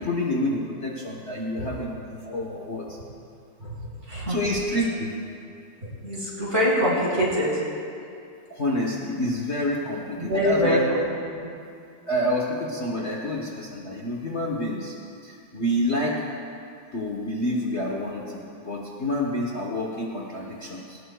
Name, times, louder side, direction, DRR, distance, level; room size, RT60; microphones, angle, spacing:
voice 1, 0.0-3.0 4.3-5.2 8.5-10.8 12.1-14.9 15.2-16.2 16.9-21.0, left 1 dB, 40° left, -3 dB, 1.2 m, -28 dB
voice 2, 4.1-4.4 6.0-7.6 10.2-11.0 11.4-11.5, equal, 30° right, -7 dB, 4.2 m, -24 dB
19.5 x 19.0 x 2.3 m, 2.5 s
omnidirectional pair, 2.3 m